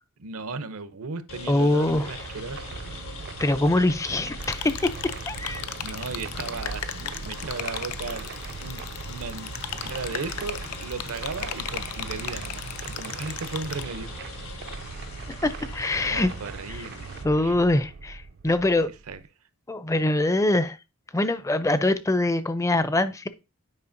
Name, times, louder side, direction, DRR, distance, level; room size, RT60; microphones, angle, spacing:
voice 1, 0.2-2.8 5.8-9.5 9.8-14.1 15.9-17.1 17.4-17.6 19.1-19.2, right 4 dB, 75° right, 0.7 m, -36 dB
sound 1, 1.3-17.2, left 4 dB, 70° left, 1.4 m, -42 dB
voice 2, 1.5-2.1 3.4-5.6 15.3-16.3 16.7-16.8 17.2-18.9 19.7-20.8 21.1-23.3, left 2 dB, 15° left, 0.4 m, -24 dB
sound 2, 1.9-19.2, right 5 dB, 50° right, 0.3 m, -39 dB
sound 3, 4.4-13.8, left 9 dB, 85° left, 0.5 m, -37 dB
9.7 x 5.0 x 2.6 m
head